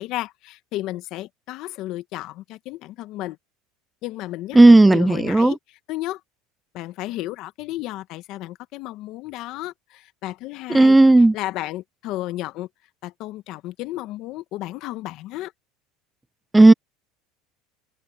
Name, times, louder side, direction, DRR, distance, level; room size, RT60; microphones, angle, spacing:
voice 1, 0.0-3.4 4.0-6.2 6.7-11.0 11.3-12.7 13.0-15.5, left 16 dB, 60° left, 1.1 m, -33 dB
voice 2, 4.6-5.5 10.7-11.3 16.5-16.7, right 2 dB, 10° right, 0.4 m, -12 dB
supercardioid pair, 115°, 0 cm